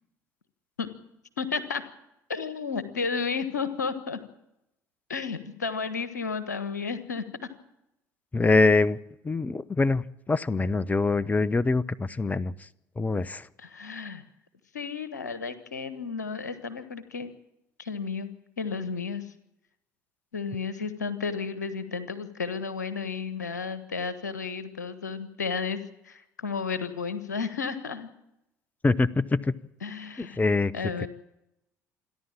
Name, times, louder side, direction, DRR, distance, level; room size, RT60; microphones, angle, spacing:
voice 1, 1.4-1.8 2.3-4.2 5.1-7.2 13.6-14.2 14.7-17.3 17.8-18.3 18.6-19.2 20.3-28.1 29.8-30.4 30.7-31.1, left 5 dB, 80° left, 12 dB, 1.4 m, -32 dB
voice 2, 8.3-9.0 9.2-10.0 10.3-12.5 13.0-13.4 28.8-29.5 30.4-30.7 31.0-31.1, left 3 dB, 15° left, 20 dB, 0.8 m, -24 dB
27.5 x 11.0 x 8.8 m, 0.85 s
figure-of-eight pair, 60°, 9 cm